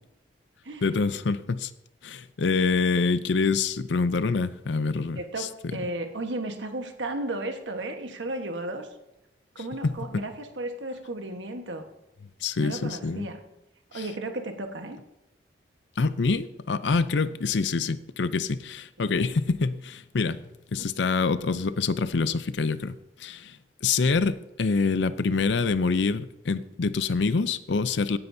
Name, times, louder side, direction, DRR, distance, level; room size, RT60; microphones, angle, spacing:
voice 1, 0.8-1.7 2.0-5.5 9.8-10.2 12.4-13.3 13.9-14.0 16.0-20.4 20.7-23.6 23.8-28.2, left 4 dB, 75° left, 14 dB, 0.6 m, -26 dB
voice 2, 5.1-8.9 9.5-11.9 12.6-13.4 13.9-15.0 19.0-19.3 20.8-20.9, right 2 dB, 85° right, 5 dB, 1.3 m, -34 dB
17.0 x 9.7 x 2.7 m, 0.91 s
head